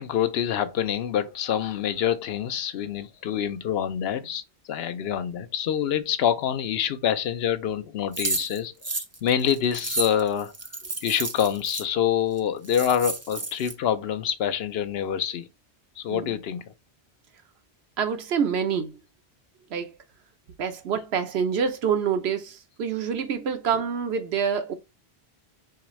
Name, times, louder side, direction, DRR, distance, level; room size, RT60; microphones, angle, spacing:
voice 1, 0.0-4.4 4.7-10.5 11.0-15.5 16.0-16.7, left 9 dB, 70° left, 0.8 m, -26 dB
sound 1, 8.1-11.8 12.4-12.5 12.6-13.7, right 3 dB, 20° right, 0.4 m, -31 dB
voice 2, 18.0-19.0 19.7-19.9 20.6-24.7, right 7 dB, 75° right, 1.0 m, -26 dB
4.8 x 3.4 x 3.1 m
omnidirectional pair, 1.1 m